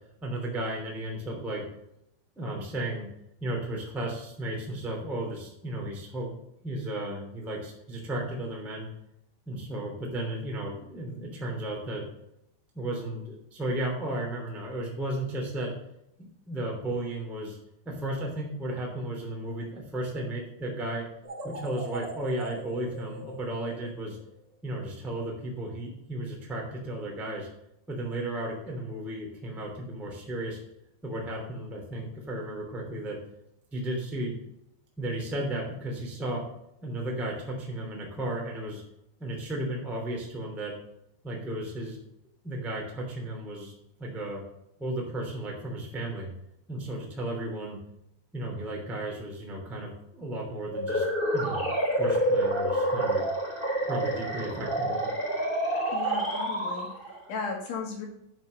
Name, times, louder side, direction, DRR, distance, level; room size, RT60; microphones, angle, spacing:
voice 1, 0.2-1.6 2.3-3.1 3.4-6.3 6.6-8.9 9.4-12.1 12.7-15.7 16.4-17.6 17.8-21.1 21.4-24.2 24.6-27.5 27.9-30.6 31.0-33.2 33.7-34.3 35.0-36.4 36.8-38.8 39.2-40.8 41.2-42.0 42.4-43.7 44.0-44.4 44.8-46.3 46.7-47.8 48.3-51.1 51.3-51.6 52.0-53.2 53.8-55.0, right 1 dB, ahead, -2 dB, 0.5 m, -34 dB
sound 1, 21.2-24.4, right 1 dB, 90° right, 0.3 m, -41 dB
sound 2, 50.7-57.2, right 1 dB, 15° left, 1.8 m, -28 dB
voice 2, 55.9-58.1, left 4 dB, 65° left, 1 dB, 3.2 m, -36 dB
9.0 x 6.2 x 6.6 m, 0.80 s
omnidirectional pair, 5.9 m